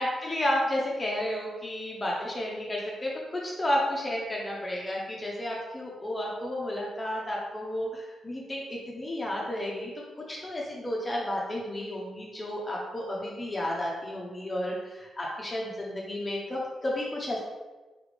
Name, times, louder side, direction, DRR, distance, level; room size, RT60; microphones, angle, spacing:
voice 1, 0.0-9.9 10.3-17.4, left 1 dB, 25° left, -3 dB, 0.9 m, -32 dB
4.1 x 3.5 x 3.4 m, 1.2 s
supercardioid pair, 55°, 0 cm